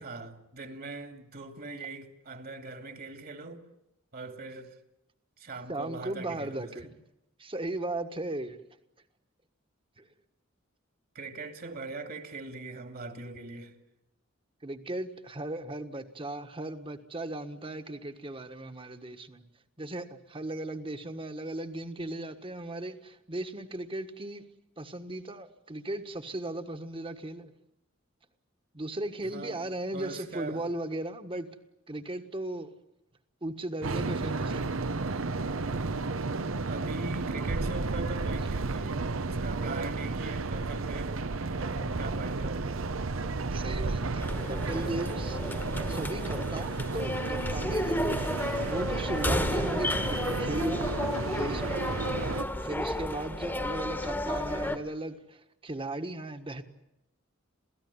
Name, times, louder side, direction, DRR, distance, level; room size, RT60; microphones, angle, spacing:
voice 1, 0.0-3.7 4.1-4.8 5.4-6.9 11.1-13.7 29.2-30.7 36.7-41.3 41.5-42.7 44.7-45.2, right 3 dB, 50° right, 2.5 m, -41 dB
voice 2, 5.7-6.9 7.4-8.6 10.0-10.1 14.6-19.4 19.8-24.4 24.8-27.5 28.7-31.5 31.9-32.7 33.4-34.7 43.5-45.4 45.9-48.3 48.6-51.0 51.3-52.0 52.6-56.6, right 1 dB, 25° right, 1.5 m, -37 dB
sound 1, 33.8-52.4, right 3 dB, 85° right, 0.9 m, -32 dB
sound 2, 44.2-54.8, left 1 dB, 10° left, 1.4 m, -32 dB
28.0 x 17.0 x 9.7 m
head